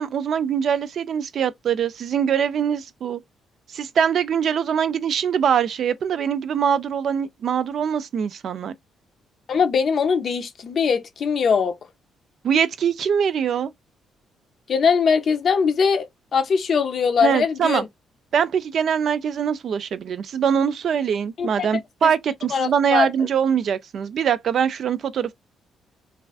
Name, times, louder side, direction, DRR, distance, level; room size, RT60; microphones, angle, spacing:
voice 1, 0.0-3.2 3.7-8.7 12.4-13.7 17.2-17.8 18.3-25.3, right 7 dB, 60° right, 0.3 m, -23 dB
voice 2, 9.5-11.8 14.7-17.9 21.4-21.7 22.0-22.1 22.5-23.1, left 6 dB, 55° left, 0.5 m, -21 dB
2.4 x 2.3 x 2.3 m
cardioid pair, 90°, 0 cm